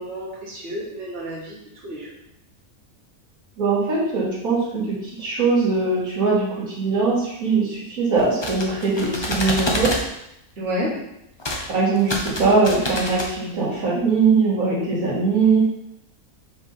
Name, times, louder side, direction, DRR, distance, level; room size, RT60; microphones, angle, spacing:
voice 1, 0.0-2.1 10.6-10.9, equal, 50° right, -7 dB, 1.9 m, -30 dB
voice 2, 3.6-9.9 11.7-15.7, right 4 dB, 70° right, -6 dB, 2.2 m, -21 dB
sound 1, 8.2-10.0 11.4-11.6 12.0-13.3, left 1 dB, 25° left, 0.6 m, -27 dB
5.1 x 3.6 x 5.4 m, 0.80 s
omnidirectional pair, 1.5 m